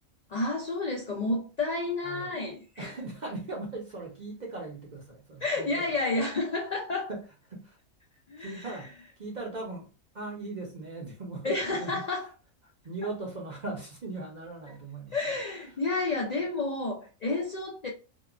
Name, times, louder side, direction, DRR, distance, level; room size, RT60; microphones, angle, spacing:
voice 1, 0.3-2.9 5.4-7.1 8.3-8.7 11.4-12.3 15.1-17.9, left 2 dB, 75° left, 0.3 m, -30 dB
voice 2, 2.0-2.4 2.8-6.0 7.1-7.2 7.5-7.8 8.4-9.9 10.1-12.1 12.8-15.2 15.7-15.8, right 2 dB, 45° right, 0.6 m, -39 dB
2.8 x 2.2 x 2.3 m
omnidirectional pair, 1.4 m